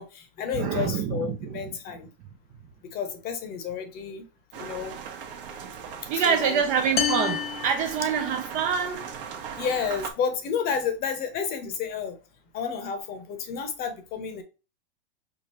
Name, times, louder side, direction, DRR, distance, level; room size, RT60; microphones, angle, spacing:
voice 1, 0.0-2.1 2.8-4.2 4.5-5.0 6.1-6.6 9.6-12.2 12.5-14.4, left 6 dB, 30° left, 0.8 m, -31 dB
voice 2, 0.6-1.2 6.1-9.0, right 7 dB, 25° right, 0.4 m, -25 dB
sound 1, 4.5-10.1, right 7 dB, 60° right, 1.0 m, -39 dB
sound 2, 7.0-8.7, left 9 dB, 70° left, 0.7 m, -30 dB
4.7 x 2.3 x 3.0 m
hypercardioid pair, 130°, 30 cm